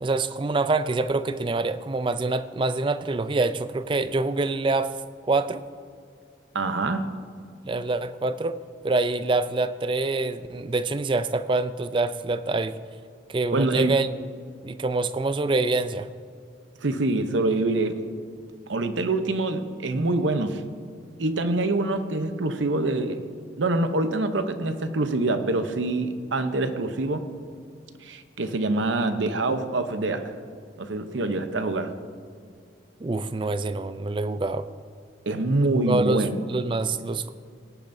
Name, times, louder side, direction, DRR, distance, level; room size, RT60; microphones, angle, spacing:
voice 1, 0.0-5.0 5.3-5.6 7.6-8.6 8.8-12.8 13.3-14.1 14.6-16.1 33.0-34.7 35.7-37.3, right 3 dB, 25° right, 12 dB, 0.4 m, -25 dB
voice 2, 6.5-7.1 13.5-14.0 16.8-18.0 18.7-20.6 21.2-23.3 23.6-27.2 28.0-30.3 30.8-31.9 35.3-36.4, right 2 dB, 80° right, 9 dB, 0.8 m, -25 dB
18.5 x 10.5 x 2.7 m, 2.2 s
head